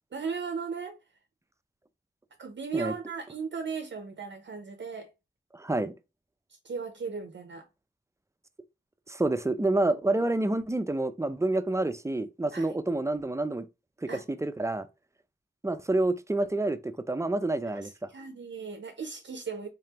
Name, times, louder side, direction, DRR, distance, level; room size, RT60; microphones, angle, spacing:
voice 1, 0.1-1.0 2.4-5.1 6.6-7.6 12.5-12.8 14.1-14.2 17.8-19.7, right 5 dB, 65° right, 0.6 m, -37 dB
voice 2, 5.5-5.9 9.1-13.7 14.0-14.9 15.6-18.1, right 2 dB, 15° right, 0.5 m, -28 dB
3.7 x 3.3 x 2.8 m
cardioid pair, 50°, 20 cm